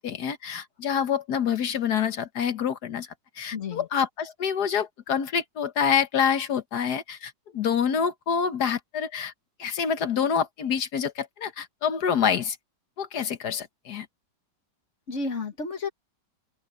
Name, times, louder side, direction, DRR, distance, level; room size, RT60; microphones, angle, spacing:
voice 1, 0.0-3.1 3.4-9.3 9.6-12.6 13.0-14.1, left 7 dB, 65° left, 1.7 m, -27 dB
voice 2, 3.5-3.9 15.1-15.9, left 4 dB, 40° left, 2.0 m, -31 dB
open air
omnidirectional pair, 1.9 m